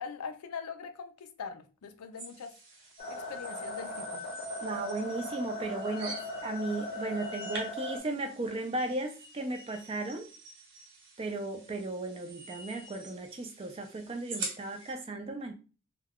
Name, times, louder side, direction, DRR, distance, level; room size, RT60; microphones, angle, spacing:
voice 1, 0.0-2.5 3.1-4.3, left 6 dB, 90° left, 0.4 m, -42 dB
sound 1, 2.2-14.9, right 3 dB, 55° right, 0.8 m, -46 dB
sound 2, 3.0-8.0, left 1 dB, 35° left, 0.6 m, -39 dB
voice 2, 4.6-6.1 6.4-10.3 11.2-15.5, right 2 dB, 25° right, 0.3 m, -35 dB
2.3 x 2.2 x 3.4 m
head